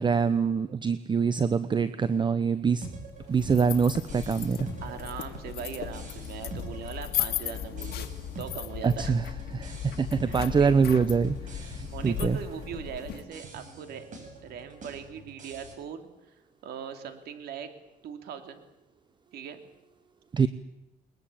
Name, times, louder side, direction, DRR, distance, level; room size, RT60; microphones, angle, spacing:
voice 1, 0.0-2.9 3.3-4.7 8.8-9.2 9.5-12.4 20.3-20.5, right 5 dB, 25° right, 14 dB, 0.9 m, -25 dB
sound 1, 2.8-15.7, right 3 dB, 50° right, 7.0 m, -45 dB
sound 2, 3.1-13.2, left 11 dB, 70° left, 2.0 m, -36 dB
voice 2, 4.8-8.1 8.4-9.2 9.8-9.9 10.2-10.7 11.9-14.0 14.4-16.1 16.6-17.7 18.0-18.6 19.3-19.7, right 7 dB, 70° right, 8 dB, 3.1 m, -40 dB
21.5 x 21.5 x 8.7 m, 0.94 s
cardioid pair, 110°, 17 cm